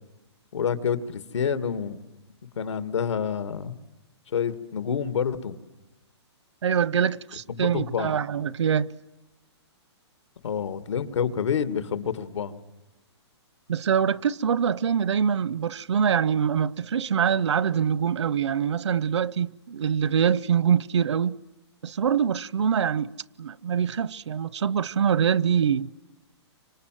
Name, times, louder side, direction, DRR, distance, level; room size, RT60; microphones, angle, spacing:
voice 1, 0.5-2.0 2.6-3.7 4.3-5.5 7.5-8.2 10.4-12.6, left 7 dB, 90° left, 2.3 m, -28 dB
voice 2, 6.6-8.9 13.7-21.4 21.8-23.1 23.4-25.9, right 7 dB, 80° right, 0.9 m, -24 dB
29.5 x 26.0 x 7.7 m
hypercardioid pair, 180°, 15 cm